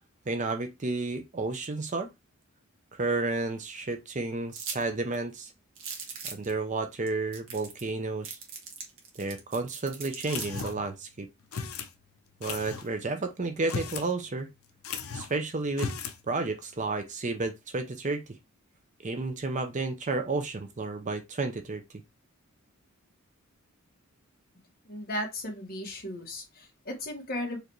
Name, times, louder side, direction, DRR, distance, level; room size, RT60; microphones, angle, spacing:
voice 1, 0.3-2.1 2.9-5.5 6.3-8.4 9.2-11.3 12.4-14.5 15.1-15.9 16.3-18.2 19.0-21.8, right 3 dB, 35° right, 0.6 m, -31 dB
sound 1, 4.5-4.8 5.1-5.2 5.8-6.5 7.1-7.2 7.3-7.9 8.2-10.7, right 6 dB, 60° right, 1.4 m, -40 dB
sound 2, 10.3-10.9 11.5-11.9 12.4-12.9 13.6-14.1 14.4-14.5 14.8-15.4 15.7-16.2, left 5 dB, 75° left, 0.7 m, -36 dB
voice 2, 24.8-27.6, left 1 dB, 45° left, 1.6 m, -36 dB
4.7 x 3.3 x 3.1 m
head